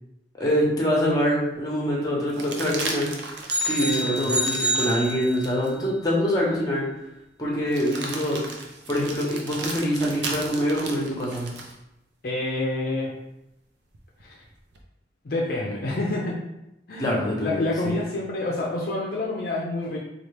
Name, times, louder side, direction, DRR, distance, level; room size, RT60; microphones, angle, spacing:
voice 1, 0.4-3.1 3.6-6.8 7.4-8.4 8.9-11.5 17.0-17.9, equal, 20° left, -3 dB, 0.9 m, -25 dB
sound 1, 0.7-0.8 2.3-5.7 6.3-6.4 7.7-11.8 13.9-14.8, right 3 dB, 70° right, 0.6 m, -36 dB
sound 2, 3.5-5.7, equal, 5° right, 0.5 m, -27 dB
voice 2, 3.8-4.4 12.2-13.1 14.2-14.4 15.2-16.4 16.9-20.0, left 2 dB, 55° left, -3 dB, 0.5 m, -28 dB
4.3 x 2.4 x 3.3 m, 0.87 s
head